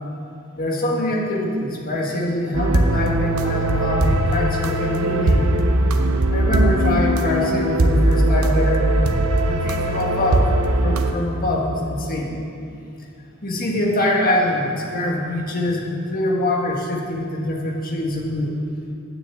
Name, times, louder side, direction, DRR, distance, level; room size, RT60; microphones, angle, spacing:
voice 1, 0.5-5.5 6.3-8.9 9.4-10.5 10.8-12.4 13.4-18.5, left 1 dB, 45° left, -1 dB, 1.7 m, -24 dB
sound 1, 2.5-11.1, right 1 dB, 80° right, 0.8 m, -19 dB
9.6 x 7.0 x 8.0 m, 2.6 s
head